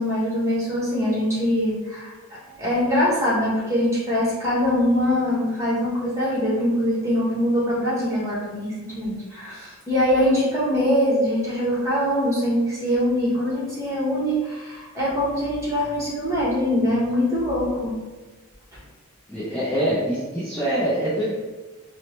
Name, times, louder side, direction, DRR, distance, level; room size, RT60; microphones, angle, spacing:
voice 1, 0.0-17.9 18.7-18.8, equal, 15° right, -7 dB, 0.9 m, -23 dB
voice 2, 19.3-21.3, equal, 5° left, -10 dB, 0.4 m, -24 dB
4.3 x 2.0 x 3.1 m, 1.2 s
head